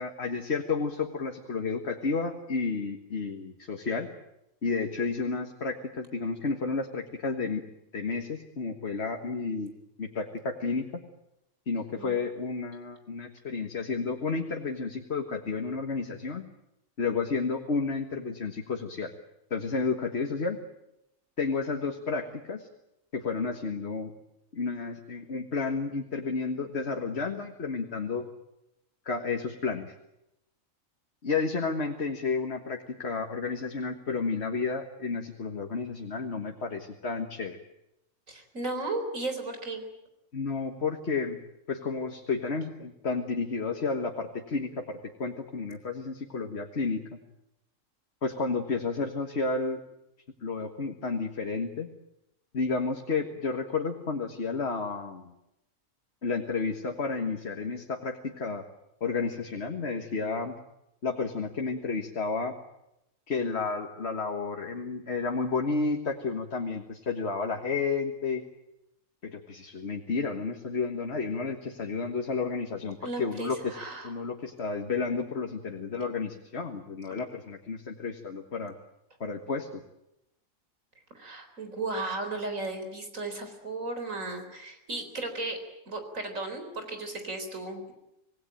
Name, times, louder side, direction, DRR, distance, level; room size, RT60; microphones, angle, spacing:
voice 1, 0.0-4.1 4.6-7.6 7.9-9.7 10.0-10.9 11.7-16.5 17.0-19.1 19.5-20.6 21.4-22.7 23.1-24.1 24.5-28.3 29.1-29.9 31.2-37.6 40.3-41.4 41.7-47.0 48.2-49.8 50.4-51.9 52.5-55.3 56.2-58.6 59.0-60.6 61.0-62.5 63.3-68.4 69.2-73.8 74.0-78.7 79.2-79.8, left 4 dB, 55° left, 3 dB, 1.8 m, -31 dB
voice 2, 38.3-39.8 73.0-74.1 81.1-87.9, right 2 dB, 80° right, 6 dB, 4.5 m, -35 dB
26.5 x 18.5 x 9.0 m, 0.87 s
omnidirectional pair, 1.4 m